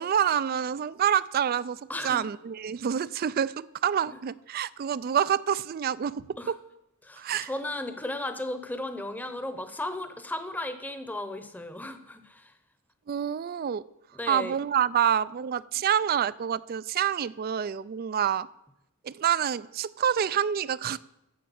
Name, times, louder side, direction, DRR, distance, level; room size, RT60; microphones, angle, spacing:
voice 1, 0.0-6.6 7.2-7.5 13.1-13.8 14.3-18.5 19.0-21.0, right 9 dB, 45° right, 19 dB, 0.3 m, -27 dB
voice 2, 1.9-2.2 6.4-6.5 7.0-12.5 14.1-14.5, left 1 dB, 10° left, 9 dB, 0.8 m, -35 dB
10.0 x 7.5 x 7.1 m, 0.86 s
head